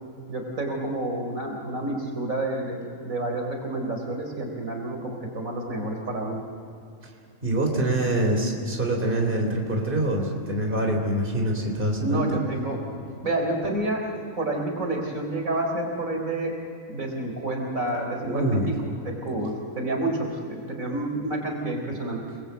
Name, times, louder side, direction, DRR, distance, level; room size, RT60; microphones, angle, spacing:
voice 1, 0.3-6.4 12.0-12.8 13.2-14.0 14.3-16.5 16.9-22.2, right 2 dB, 85° right, 2 dB, 4.3 m, -29 dB
voice 2, 7.4-12.3 18.2-18.7, right 1 dB, 40° right, 2 dB, 3.7 m, -25 dB
30.0 x 21.0 x 8.1 m, 2.7 s
omnidirectional pair, 1.4 m